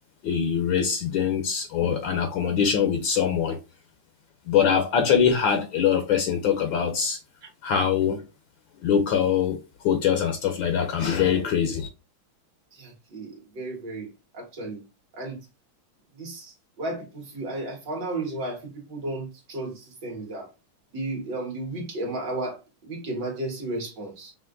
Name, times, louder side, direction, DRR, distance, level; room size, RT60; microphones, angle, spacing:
voice 1, 0.2-3.6 4.5-7.2 7.6-8.2 8.8-9.6 9.8-11.9, left 7 dB, 75° left, 1.3 m, -23 dB
voice 2, 12.7-14.8 15.2-15.4 16.2-20.5 20.9-24.3, right 2 dB, 55° right, 2.0 m, -34 dB
5.7 x 2.5 x 2.4 m
omnidirectional pair, 2.3 m